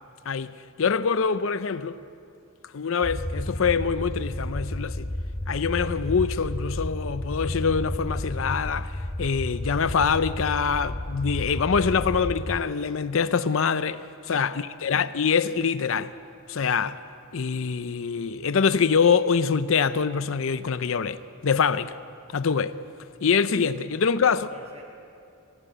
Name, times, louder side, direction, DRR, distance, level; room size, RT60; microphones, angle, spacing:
voice 1, 0.3-2.0 2.7-5.1 5.5-8.9 9.2-16.1 16.5-17.0 17.3-22.0 22.3-22.7 23.2-24.5, left 6 dB, 65° left, 0.5 m, -24 dB
sound 1, 3.0-12.6, left 1 dB, 15° left, 0.5 m, -32 dB
voice 2, 14.3-14.8 23.9-24.8, equal, 30° right, 4.4 m, -49 dB
19.0 x 15.0 x 9.1 m
head